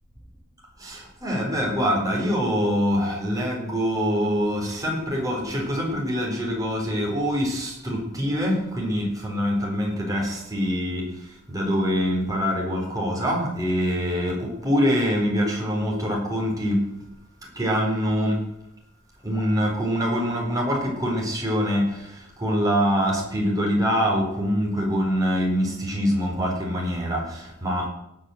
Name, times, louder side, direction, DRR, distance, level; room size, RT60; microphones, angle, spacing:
voice 1, 0.8-11.0 11.5-16.8 17.6-18.4 19.2-27.9, equal, 20° right, -1 dB, 4.3 m, -24 dB
17.5 x 5.9 x 8.0 m, 0.84 s
head